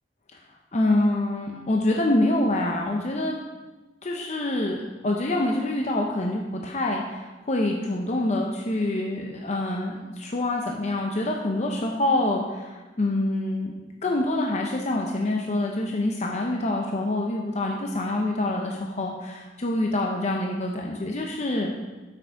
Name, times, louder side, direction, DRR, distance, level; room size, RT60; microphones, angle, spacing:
voice 1, 0.7-3.4 4.0-4.8 5.0-13.7 14.0-21.7, left 1 dB, 40° left, 0 dB, 0.6 m, -26 dB
7.6 x 6.2 x 4.5 m, 1.2 s
head